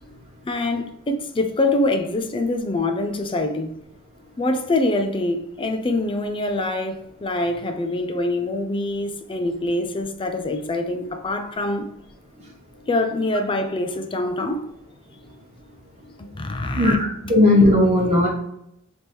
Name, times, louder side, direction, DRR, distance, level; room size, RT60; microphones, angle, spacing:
voice 1, 0.5-3.7 4.4-11.9 12.9-14.7 16.2-17.0 17.2-17.4, left 2 dB, 25° left, 0.5 m, -24 dB
voice 2, 16.7-18.3, left 1 dB, 30° right, 0.9 m, -16 dB
3.5 x 3.0 x 4.2 m
head